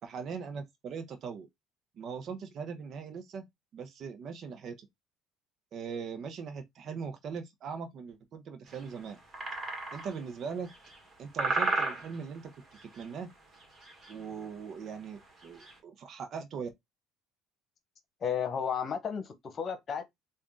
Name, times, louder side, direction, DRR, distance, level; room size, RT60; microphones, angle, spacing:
voice 1, 0.0-1.5 2.0-3.4 3.7-4.9 5.7-9.2 9.9-10.7 11.2-12.5 12.8-13.3 14.1-16.7, right 6 dB, 50° right, 0.9 m, -40 dB
sound 1, 8.7-8.8 9.3-10.2 10.7-11.1 11.4-12.4 12.7-13.1 13.6-14.1 14.4-14.5 14.9-15.0 15.4-15.7, right 3 dB, 30° right, 1.9 m, -33 dB
voice 2, 18.2-20.1, left 7 dB, 40° left, 1.1 m, -33 dB
3.6 x 2.6 x 3.7 m
supercardioid pair, 100°, 0 cm